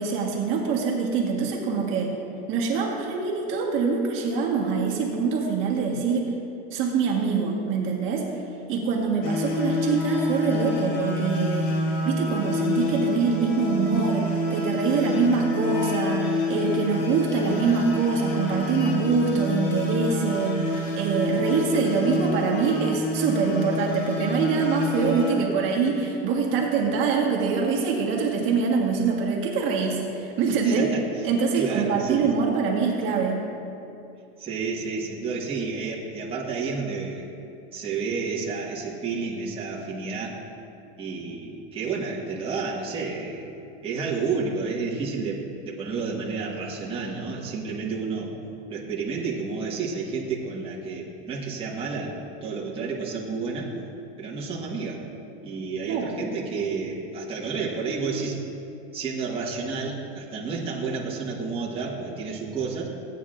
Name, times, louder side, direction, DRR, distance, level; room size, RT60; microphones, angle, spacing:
voice 1, 0.0-2.1 2.5-6.3 6.7-8.3 8.7-30.9 31.2-33.4 55.9-56.1, right 5 dB, 40° right, -1 dB, 1.5 m, -24 dB
sound 1, 9.2-25.4, left 2 dB, 45° left, 2.0 m, -28 dB
voice 2, 30.6-31.0 31.5-32.3 34.4-37.3 37.7-40.4 41.0-43.5 43.8-48.3 48.7-52.1 52.4-53.7 54.2-55.0 55.4-58.4 58.9-62.9, right 4 dB, 15° right, -5 dB, 1.4 m, -30 dB
16.5 x 9.2 x 2.5 m, 2.7 s
supercardioid pair, 150°, 31 cm